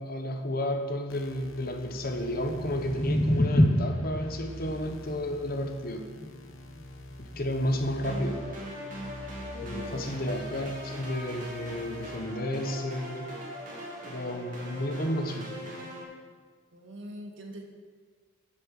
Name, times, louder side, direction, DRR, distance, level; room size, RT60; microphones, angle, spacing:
voice 1, 0.0-6.1 7.2-8.4 9.6-13.3 14.1-15.5, left 1 dB, 45° left, 4 dB, 1.0 m, -32 dB
sound 1, 1.1-12.2, left 1 dB, 75° left, 1.2 m, -45 dB
sound 2, 2.4-8.5, left 1 dB, 20° left, 0.7 m, -29 dB
sound 3, 8.0-16.0, equal, 40° right, 2.4 m, -41 dB
voice 2, 9.7-10.1 16.7-17.6, right 1 dB, 60° right, 2 dB, 1.6 m, -43 dB
8.9 x 7.5 x 7.3 m, 1.6 s
head